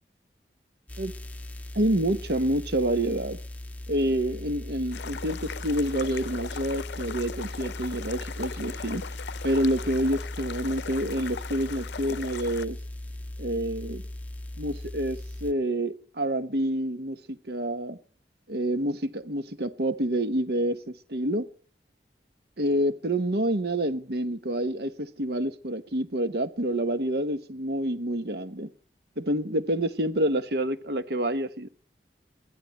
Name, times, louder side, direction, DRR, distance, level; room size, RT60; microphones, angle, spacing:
sound 1, 0.9-15.5, left 1 dB, 10° left, 0.8 m, -38 dB
voice 1, 1.7-3.4 3.9-9.0 9.4-12.8 13.4-14.0 14.6-18.0 18.5-21.5 22.6-28.7 29.2-31.7, right 1 dB, 60° right, 1.1 m, -28 dB
sound 2, 4.9-12.7, left 6 dB, 75° left, 0.6 m, -39 dB
22.5 x 15.0 x 3.1 m
head